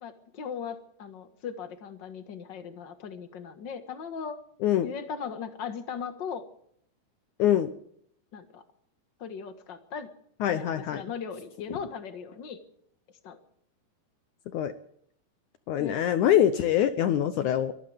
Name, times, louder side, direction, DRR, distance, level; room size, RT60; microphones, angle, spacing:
voice 1, 0.0-4.4 4.8-6.5 8.3-8.6 9.2-10.1 10.5-12.6 13.2-13.4 15.7-16.0, left 6 dB, 45° left, 8 dB, 1.5 m, -38 dB
voice 2, 10.4-11.0 14.5-14.7 15.7-17.7, left 11 dB, 75° left, 11 dB, 1.9 m, -24 dB
23.5 x 15.5 x 3.5 m, 0.66 s
omnidirectional pair, 4.2 m